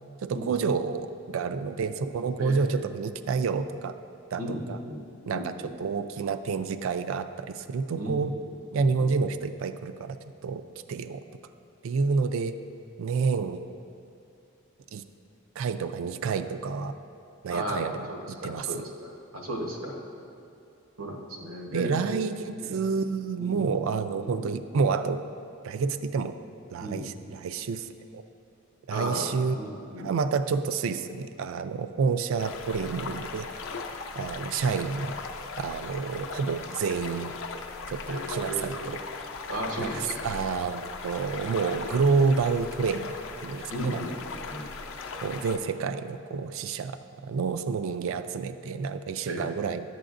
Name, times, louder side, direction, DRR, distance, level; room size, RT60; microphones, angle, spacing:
voice 1, 0.2-3.9 4.3-4.8 5.3-5.5 5.8-8.3 8.7-10.2 10.4-10.6 10.9-11.2 11.8-12.5 13.0-13.6 14.9-15.0 15.6-16.9 17.4-18.8 21.7-25.2 25.6-26.4 26.7-28.2 28.9-29.5 30.0-33.5 34.2-35.1 35.6-37.3 37.9-39.0 39.8-43.1 43.4-44.0 45.2-49.8, right 5 dB, 70° right, 11 dB, 0.3 m, -29 dB
voice 2, 2.3-2.7 4.4-5.7 7.9-8.3 8.7-9.1 17.5-20.0 21.0-22.0 22.5-22.8 23.4-23.6 24.2-24.5 26.8-27.1 28.9-29.3 29.5-30.1 38.1-38.9 39.5-40.3 43.7-44.7 49.2-49.5, equal, 85° right, 0 dB, 1.1 m, -35 dB
sound 1, 32.4-45.6, left 4 dB, 65° left, 0.5 m, -38 dB
11.5 x 7.9 x 2.5 m, 2.6 s
head